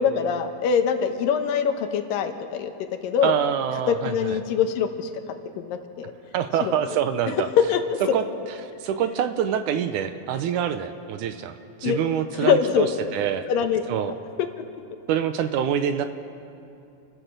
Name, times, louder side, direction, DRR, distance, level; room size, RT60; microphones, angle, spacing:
voice 1, 0.0-2.7 3.0-3.4 3.9-5.1 5.6-6.1 6.6-6.7 7.7-8.0 11.8-12.0 12.3-12.9 13.5-13.8 14.6-14.7, left 7 dB, 85° left, 7 dB, 2.8 m, -23 dB
voice 2, 3.2-4.4 6.3-7.5 8.1-8.2 8.6-12.9 13.1-13.5 13.9-14.1 15.1-16.1, right 9 dB, 75° right, 9 dB, 2.0 m, -25 dB
29.5 x 15.5 x 6.6 m, 2.6 s
omnidirectional pair, 4.0 m